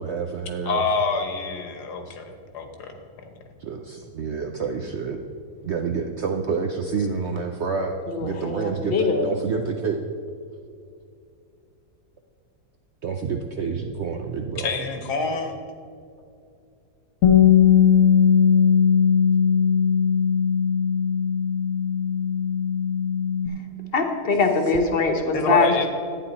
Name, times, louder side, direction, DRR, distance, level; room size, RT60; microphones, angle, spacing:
voice 1, 0.0-0.8 3.6-5.2 5.6-10.0 13.0-14.7, right 5 dB, 65° right, 3 dB, 0.7 m, -28 dB
voice 2, 0.6-2.9 14.5-15.5 25.3-25.9, left 4 dB, 80° left, 5 dB, 1.6 m, -26 dB
voice 3, 8.1-9.2 23.9-25.9, left 3 dB, 40° left, 5 dB, 1.1 m, -22 dB
Bass guitar, 17.2-23.5, left 7 dB, 65° left, 1.2 m, -19 dB
11.5 x 9.0 x 4.2 m, 2.4 s
omnidirectional pair, 1.7 m